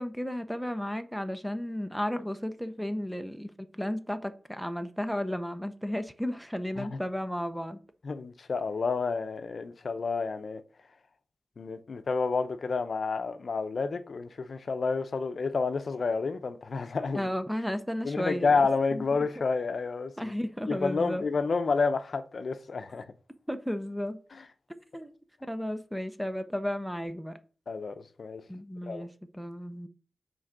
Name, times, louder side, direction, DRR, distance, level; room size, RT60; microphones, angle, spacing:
voice 1, 0.0-7.8 17.1-18.6 18.9-19.0 19.4-19.5 20.2-21.2 23.5-24.2 24.9-25.1 25.5-27.4 28.5-29.9, equal, ahead, 0.7 m, -33 dB
voice 2, 8.0-10.6 11.6-17.3 18.0-20.3 20.7-23.0 27.7-28.4 28.9-29.1, left 4 dB, 60° left, 0.7 m, -30 dB
6.2 x 4.6 x 6.6 m
wide cardioid pair, 110°, 0 cm